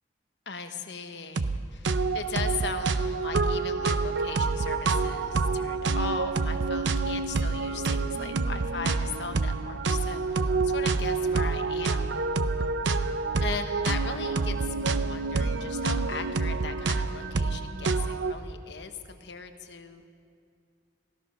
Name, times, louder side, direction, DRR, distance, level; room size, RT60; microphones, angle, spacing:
voice 1, 0.5-12.2 13.4-20.0, left 5 dB, 75° left, 7 dB, 1.1 m, -38 dB
sound 1, 1.4-1.6 1.8-18.3, right 4 dB, 85° right, 0.6 m, -27 dB
16.5 x 13.5 x 6.2 m, 2.3 s
head